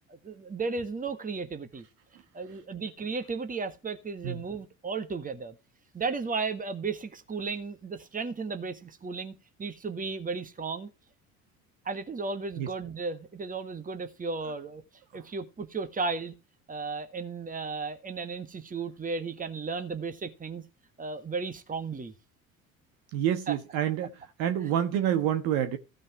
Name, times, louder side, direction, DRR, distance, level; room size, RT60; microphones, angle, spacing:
voice 1, 0.2-1.8 2.3-5.5 5.9-9.3 9.6-10.9 11.8-14.8 15.1-16.4 16.7-20.6 21.0-22.1 23.5-23.6 24.6-24.7, right 4 dB, 20° right, 1.6 m, -34 dB
voice 2, 23.1-25.8, right 10 dB, 60° right, 1.4 m, -28 dB
15.5 x 5.2 x 4.7 m
figure-of-eight pair, 60°, 41 cm